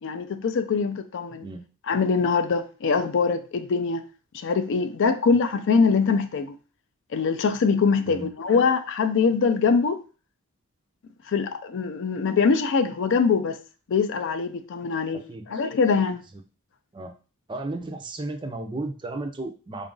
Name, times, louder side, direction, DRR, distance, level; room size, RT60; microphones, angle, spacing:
voice 1, 0.0-1.5 1.9-4.0 4.3-6.5 7.1-10.0 11.3-13.6 13.9-15.2 15.5-16.2, left 5 dB, 60° left, 0.4 m, -23 dB
voice 2, 15.1-15.5 16.9-17.2 17.5-19.9, right 2 dB, 20° right, 0.4 m, -34 dB
3.8 x 2.5 x 3.7 m
head